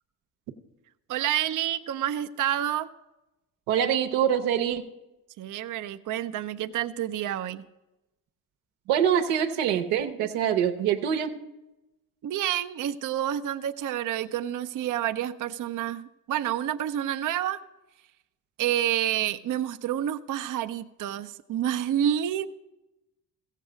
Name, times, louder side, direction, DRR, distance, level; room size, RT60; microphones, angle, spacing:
voice 1, 1.1-2.9 5.4-7.6 12.2-17.6 18.6-22.5, right 11 dB, 45° right, 9 dB, 0.6 m, -29 dB
voice 2, 3.7-4.9 8.9-11.4, right 9 dB, 80° right, 6 dB, 0.9 m, -24 dB
15.0 x 7.5 x 5.0 m, 0.98 s
hypercardioid pair, 50°, 46 cm